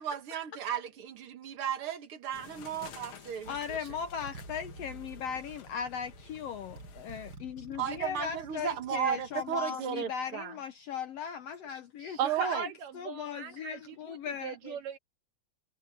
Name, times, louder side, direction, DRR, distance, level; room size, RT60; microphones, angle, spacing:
voice 1, 0.0-3.8 7.8-10.5 12.0-12.6, right 9 dB, 55° right, 1.8 m, -35 dB
sound 1, 2.3-7.4, left 8 dB, 55° left, 1.7 m, -52 dB
Motorcycle, 2.9-3.0 3.4-9.6, right 3 dB, 35° right, 5.8 m, -50 dB
voice 2, 3.5-12.7 12.9-14.8, left 7 dB, 70° left, 1.5 m, -38 dB
voice 3, 12.2-15.0, right 9 dB, 90° right, 3.5 m, -37 dB
omnidirectional pair, 3.7 m